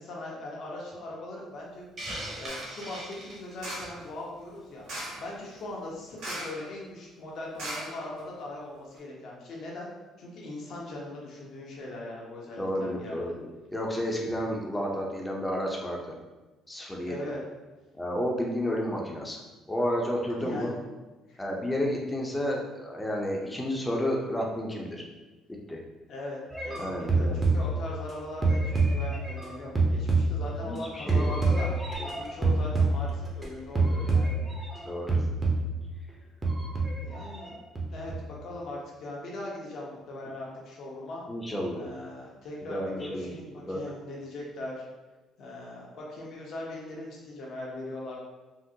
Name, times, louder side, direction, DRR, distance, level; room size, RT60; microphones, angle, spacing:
voice 1, 0.0-1.9 2.4-4.9 5.2-9.9 10.2-13.3 17.1-17.4 20.4-20.7 21.3-21.4 26.1-28.6 28.9-31.7 32.1-34.4 37.0-37.5 37.9-38.1 38.4-41.2 41.8-44.8 45.4-48.2, left 2 dB, 65° left, -3 dB, 0.9 m, -40 dB
Hiss, 2.0-4.0, right 1 dB, 40° right, 1.1 m, -39 dB
sound 1, 2.5-2.8 3.6-4.0 4.8-5.3 6.2-6.7 6.9-7.0 7.6-8.4 8.9-9.0, right 1 dB, 80° right, 1.0 m, -38 dB
voice 2, 12.6-13.5 13.7-16.0 16.7-17.2 18.0-19.4 19.7-20.7 21.4-25.0 25.7-25.8 26.8-27.4 30.6-31.3 31.6-31.7 32.0-32.1 34.8-35.2 41.3-41.8 42.7-43.3 43.7-43.8, equal, 10° left, -1 dB, 0.6 m, -31 dB
sound 2, 26.5-28.1 28.4-30.8 31.1-33.4 33.8-34.8 35.1-35.9 36.4-37.5 37.8-38.3, right 3 dB, 25° right, 0.7 m, -27 dB
3.7 x 2.0 x 2.7 m, 1.2 s
cardioid pair, 95°, 0 cm